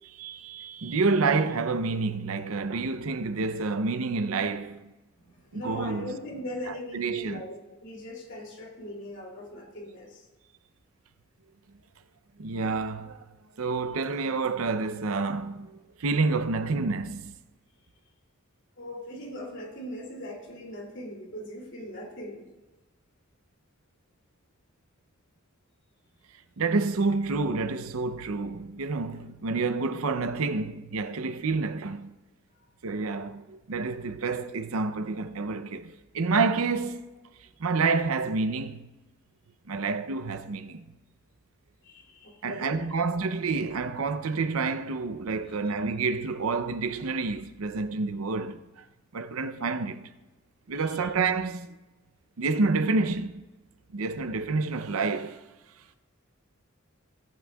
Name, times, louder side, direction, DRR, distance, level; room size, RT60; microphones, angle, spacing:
voice 1, 0.0-4.9 5.5-6.2 6.7-7.4 12.4-13.3 13.6-17.3 26.6-32.1 32.8-37.1 37.6-38.9 39.7-40.9 42.4-48.8 49.1-50.0 50.7-51.8 52.4-53.4 53.9-55.5, right 4 dB, 80° right, 0.6 m, -28 dB
voice 2, 5.2-10.2 18.8-22.5 41.8-42.8 50.7-51.1, left 1 dB, 60° left, 2.7 m, -40 dB
18.0 x 8.6 x 2.3 m
head